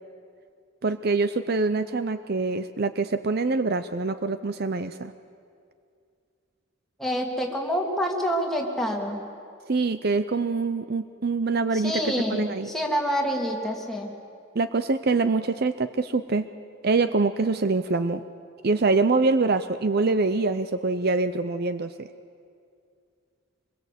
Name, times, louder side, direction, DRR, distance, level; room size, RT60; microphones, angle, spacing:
voice 1, 0.8-5.1 9.7-12.7 14.5-16.5 16.8-18.2 18.6-22.1, right 3 dB, 50° right, 11 dB, 0.6 m, -25 dB
voice 2, 7.0-9.2 11.7-14.2, equal, ahead, 0 dB, 2.5 m, -27 dB
24.5 x 22.0 x 8.3 m, 2.4 s
head